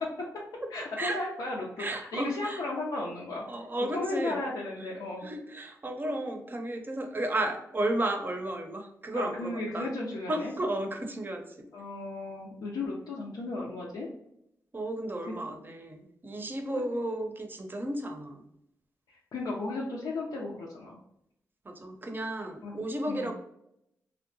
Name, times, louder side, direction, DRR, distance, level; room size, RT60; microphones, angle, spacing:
voice 1, 0.7-3.5 3.9-5.2 9.1-10.5 11.7-14.1 16.7-16.8 19.1-21.0 22.6-22.7 23.1-23.3, left 2 dB, 80° left, -4 dB, 0.5 m, -35 dB
voice 2, 1.8-2.6 3.5-4.4 5.2-9.9 10.3-11.4 14.7-18.4 21.6-23.3, right 1 dB, 30° right, 4 dB, 0.6 m, -33 dB
2.7 x 2.1 x 2.6 m, 0.79 s
cardioid pair, 55°, 7 cm